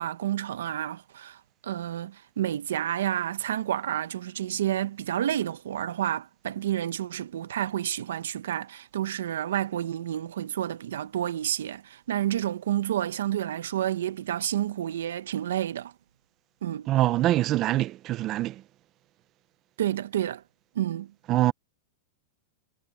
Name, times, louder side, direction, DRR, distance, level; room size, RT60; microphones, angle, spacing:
voice 1, 0.0-15.9 16.6-16.9 19.8-20.4 20.7-21.1, right 11 dB, 90° right, 0.8 m, -30 dB
voice 2, 16.9-18.6 21.3-21.5, right 15 dB, 30° right, 0.5 m, -24 dB
supercardioid pair, 150°, 0 cm